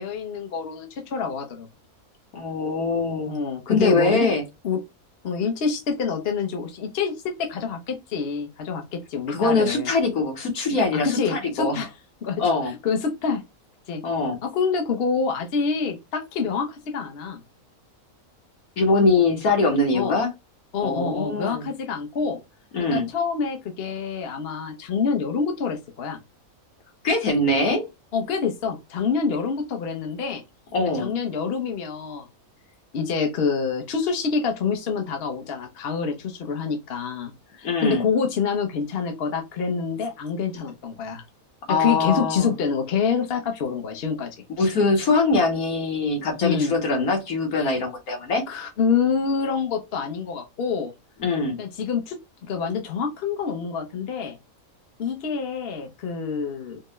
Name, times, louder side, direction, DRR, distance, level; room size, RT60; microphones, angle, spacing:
voice 1, 0.0-1.7 3.3-4.3 4.6-4.8 5.2-9.9 10.9-11.9 12.2-13.4 13.9-14.0 14.4-17.4 19.9-20.2 20.7-22.4 22.9-26.2 28.1-30.4 30.9-32.3 32.9-41.2 41.7-44.4 46.4-46.7 47.6-47.7 48.5-50.9 51.6-52.2 52.5-54.4 55.0-56.8, left 5 dB, 50° left, 0.9 m, -26 dB
voice 2, 2.3-3.4 3.7-4.4 9.3-11.8 12.4-12.7 14.0-14.4 18.8-20.3 20.8-21.7 22.7-23.1 27.0-27.9 30.7-31.1 37.6-38.0 41.7-42.5 44.6-48.4 51.2-51.6, left 3 dB, 75° left, 1.6 m, -22 dB
4.5 x 2.2 x 3.1 m
omnidirectional pair, 1.6 m